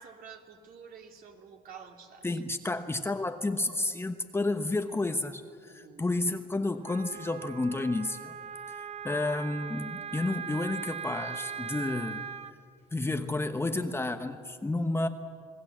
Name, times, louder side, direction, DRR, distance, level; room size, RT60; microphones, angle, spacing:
voice 1, 0.0-2.3 5.6-6.0, right 6 dB, 60° right, 2 dB, 3.2 m, -49 dB
voice 2, 2.2-8.3 9.0-12.2 12.9-15.1, left 2 dB, 15° left, 7 dB, 1.0 m, -31 dB
Wind instrument woodwind instrument, 6.8-12.5, right 7 dB, 40° right, 0.9 m, -40 dB
28.0 x 19.5 x 7.5 m, 2.3 s
cardioid pair, 110°, 17 cm